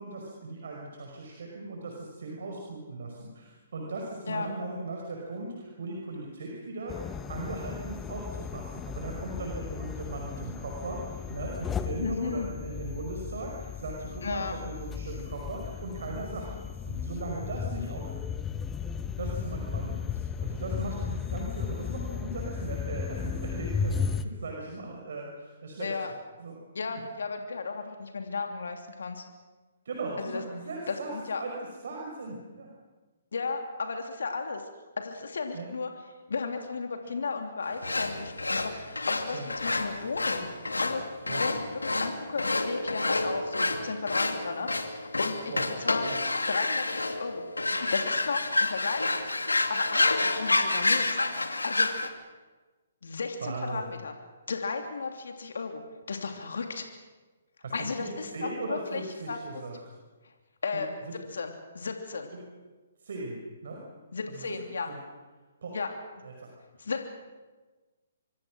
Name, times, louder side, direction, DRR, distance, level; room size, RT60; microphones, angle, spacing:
voice 1, 0.0-18.3 19.2-26.1 26.4-26.6 29.9-31.1 31.4-31.5 31.8-32.7 35.5-35.7 39.3-39.5 41.3-41.4 45.5-45.7 46.0-46.2 53.4-53.9 57.6-59.8 61.1-61.2 62.3-62.4 63.0-63.8 64.3-64.6 64.8-65.0 65.6-65.8 66.2-66.5, right 2 dB, 65° right, 0 dB, 5.5 m, -38 dB
sound 1, 6.9-24.2, left 6 dB, 15° left, 1.2 m, -35 dB
voice 2, 11.9-12.5 14.2-14.6 25.8-26.1 26.7-29.2 30.2-30.4 30.9-31.4 33.3-34.6 35.0-35.9 36.3-40.5 40.8-41.0 41.4-44.7 45.2-45.5 45.8-46.2 46.5-47.4 47.7-49.4 49.7-51.9 53.0-54.1 54.5-55.8 56.1-56.8 57.7-59.0 59.3-59.4 60.6-60.9 61.3-62.3 64.1-64.9 65.7-65.9 66.2-66.3 66.8-67.1, left 4 dB, 70° left, 4 dB, 3.0 m, -34 dB
sound 2, 37.8-52.1, left 2 dB, 90° left, 2.4 m, -29 dB
26.0 x 24.5 x 6.3 m, 1.3 s
figure-of-eight pair, 135°, 0 cm